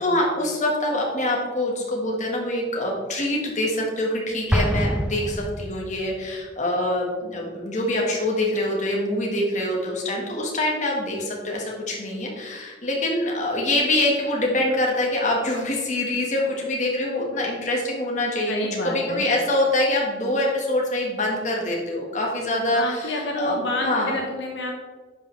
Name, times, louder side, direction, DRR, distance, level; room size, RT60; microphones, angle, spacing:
voice 1, 0.0-18.5 18.8-24.1, left 1 dB, 40° left, -2 dB, 1.7 m, -25 dB
Explosion, 4.5-6.2, equal, 5° right, 0.3 m, -25 dB
voice 2, 18.5-19.2 22.7-24.7, left 1 dB, 75° left, 0 dB, 1.0 m, -29 dB
10.0 x 5.5 x 3.4 m, 1.4 s
head